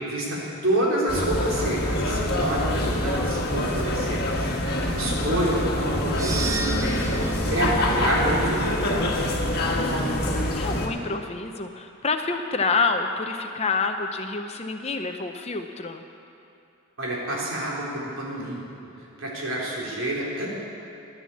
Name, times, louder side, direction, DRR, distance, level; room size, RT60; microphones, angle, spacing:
voice 1, 0.1-4.5 4.7-7.1 7.5-9.3 17.0-18.6 19.2-20.5, right 1 dB, 60° right, -5 dB, 3.6 m, -28 dB
sound 1, 1.1-10.9, left 1 dB, 45° left, 1.6 m, -25 dB
voice 2, 5.0-5.4 9.7-16.0, left 4 dB, 30° left, 6 dB, 0.6 m, -28 dB
sound 2, 6.0-10.4, right 2 dB, 15° right, 0.7 m, -34 dB
11.5 x 11.0 x 8.4 m, 2.7 s
head